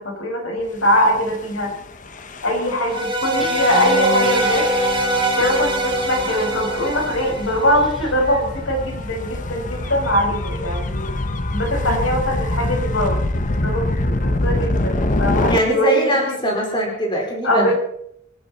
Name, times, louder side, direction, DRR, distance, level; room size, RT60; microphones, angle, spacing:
voice 1, 0.0-1.7 2.4-4.7 5.4-11.1 11.5-13.2 13.5-16.4 17.4-17.7, equal, 75° left, 1 dB, 5.2 m, -22 dB
Gull seagull / Waves surf / Siren, 0.9-15.6, left 1 dB, 40° left, 1.0 m, -26 dB
sound 1, 2.9-8.1, right 1 dB, 25° right, 2.5 m, -23 dB
Guitar, 3.4-8.1, left 1 dB, ahead, 2.6 m, -31 dB
voice 2, 15.4-17.7, right 1 dB, 25° left, 0 dB, 4.4 m, -21 dB
26.0 x 12.5 x 4.2 m, 0.73 s
head